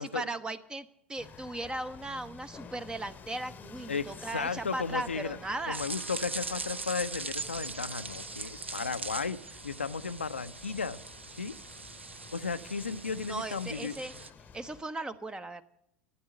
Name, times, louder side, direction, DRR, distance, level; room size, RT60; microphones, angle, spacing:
voice 1, 0.0-5.8 13.3-14.1 14.5-15.6, right 2 dB, 15° right, 15 dB, 0.8 m, -37 dB
sound 1, 1.2-14.8, left 6 dB, 25° left, 1.0 m, -51 dB
voice 2, 3.9-5.4 5.7-11.0 11.4-11.5 12.3-14.0, left 5 dB, 85° left, 11 dB, 0.5 m, -34 dB
sound 2, 5.7-14.3, right 4 dB, 85° right, 0.5 m, -41 dB
13.5 x 9.5 x 7.8 m, 0.75 s
figure-of-eight pair, 80°, 6 cm